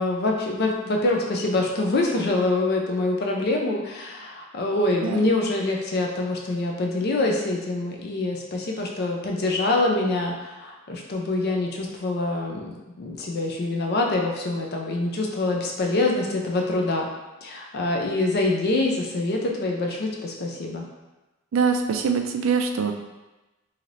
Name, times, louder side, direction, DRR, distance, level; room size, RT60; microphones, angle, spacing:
voice 1, 0.0-17.1 17.4-20.9, left 2 dB, 50° left, 0 dB, 0.5 m, -25 dB
voice 2, 21.5-22.9, right 5 dB, 70° right, 5 dB, 0.3 m, -23 dB
3.1 x 2.8 x 2.5 m, 1.1 s
head